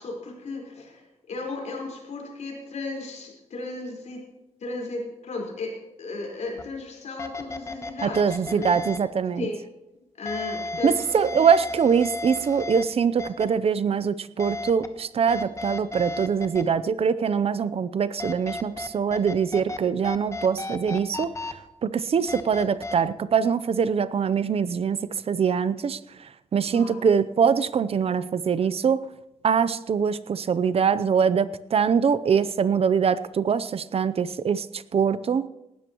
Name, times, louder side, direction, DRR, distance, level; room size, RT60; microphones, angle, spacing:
voice 1, 0.0-4.2 4.6-9.0 9.4-9.6 10.2-11.4 26.7-27.0, left 3 dB, 80° left, 0 dB, 4.6 m, -35 dB
sound 1, 6.6-6.7 7.2-9.0 10.3-12.8 13.2-13.4 14.4-14.9 15.3-16.6 18.2-19.8 20.0-21.5 22.3-23.0, left 3 dB, 25° left, 1.1 m, -34 dB
voice 2, 8.0-9.5 10.8-21.3 21.8-29.1 29.4-35.5, right 6 dB, 55° right, 15 dB, 0.6 m, -23 dB
18.5 x 13.0 x 3.0 m, 0.92 s
wide cardioid pair, 135°, 12 cm